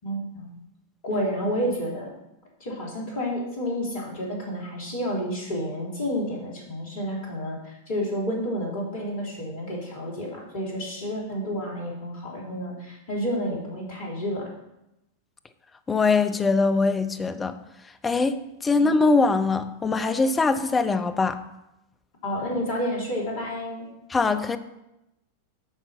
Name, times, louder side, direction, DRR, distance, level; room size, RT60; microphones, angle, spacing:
voice 1, 0.0-0.5 1.0-2.1 2.6-14.5 18.8-18.9 22.2-23.9, equal, 55° left, 3.6 m, -30 dB
voice 2, 15.9-17.6 18.0-21.4 24.1-24.6, left 3 dB, 15° left, 0.7 m, -22 dB
9.1 x 5.8 x 5.9 m
figure-of-eight pair, 90°, 0 cm